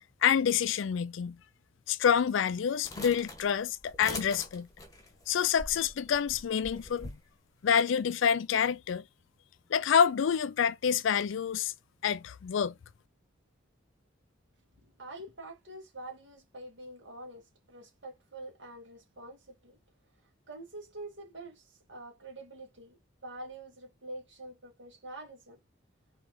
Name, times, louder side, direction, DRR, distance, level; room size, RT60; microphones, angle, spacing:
voice 1, 0.2-1.4 1.9-4.7 5.3-7.1 7.6-9.0 9.7-11.7 12.0-12.7, left 7 dB, 70° left, 0.4 m, -27 dB
sound 1, 2.8-7.2, left 2 dB, 15° left, 1.1 m, -43 dB
voice 2, 14.8-19.8 20.5-23.0 23.2-25.6, right 2 dB, 65° right, 2.3 m, -46 dB
4.4 x 3.2 x 3.7 m
head